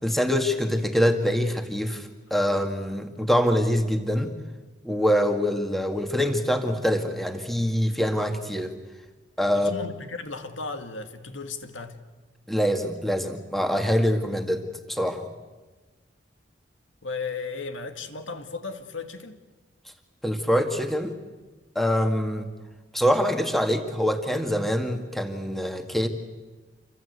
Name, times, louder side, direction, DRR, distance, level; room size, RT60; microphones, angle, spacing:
voice 1, 0.0-4.3 4.8-8.7 9.4-9.7 12.5-14.6 14.9-15.3 20.2-21.2 21.8-22.5 22.9-26.1, equal, ahead, 2.0 m, -24 dB
voice 2, 9.5-12.0 17.0-19.4, left 4 dB, 90° left, 2.2 m, -35 dB
28.0 x 25.0 x 8.2 m
head